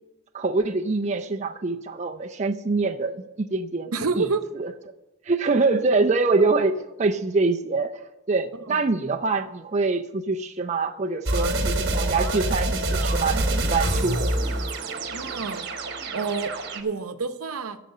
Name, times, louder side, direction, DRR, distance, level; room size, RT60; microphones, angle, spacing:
voice 1, 0.3-4.3 4.6-4.7 5.3-6.7 7.0-7.9 8.3-14.5, right 3 dB, 30° right, 4 dB, 0.5 m, -25 dB
voice 2, 3.9-4.4 6.4-6.5 8.7-8.9 15.1-15.6 16.1-17.8, right 4 dB, 85° right, 10 dB, 0.8 m, -28 dB
sound 1, 11.3-16.8, right 2 dB, 50° right, 1.3 m, -26 dB
13.0 x 5.1 x 7.8 m, 1.0 s
head